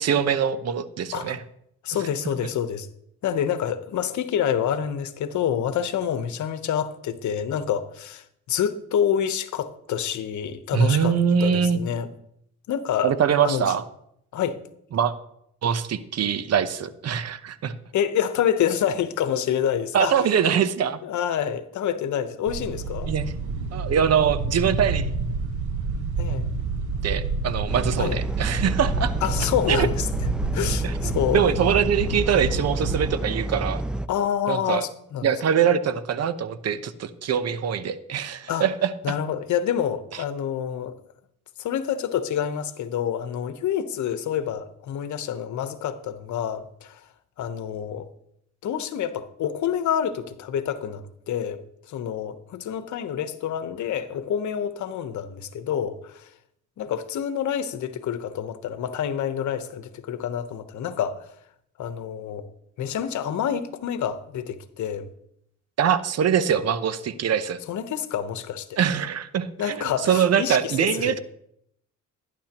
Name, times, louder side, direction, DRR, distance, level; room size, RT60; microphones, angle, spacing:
voice 1, 0.0-1.4 10.7-11.8 13.0-13.8 14.9-15.1 15.6-17.7 19.9-21.0 23.1-23.2 23.7-25.1 27.0-29.1 29.7-29.9 30.8-33.8 34.5-34.8 35.2-38.9 65.8-67.6 68.8-71.2, right 8 dB, 55° right, 0.9 m, -23 dB
voice 2, 1.8-2.9 3.2-12.1 12.7-13.1 13.4-13.7 14.3-14.6 17.9-20.3 21.0-23.1 26.2-26.5 28.0-28.2 29.2-30.1 30.5-31.4 34.1-35.3 38.5-38.7 39.0-41.0 41.6-47.0 47.4-48.1 48.6-51.6 51.9-56.3 56.8-61.3 61.8-62.5 62.8-65.1 67.7-68.8 69.6-71.2, left 9 dB, 70° left, 1.0 m, -27 dB
sound 1, 22.5-33.2, right 4 dB, 75° right, 1.3 m, -29 dB
sound 2, 27.7-34.1, right 1 dB, 5° right, 0.4 m, -29 dB
17.5 x 10.5 x 3.0 m
cardioid pair, 90°, 30 cm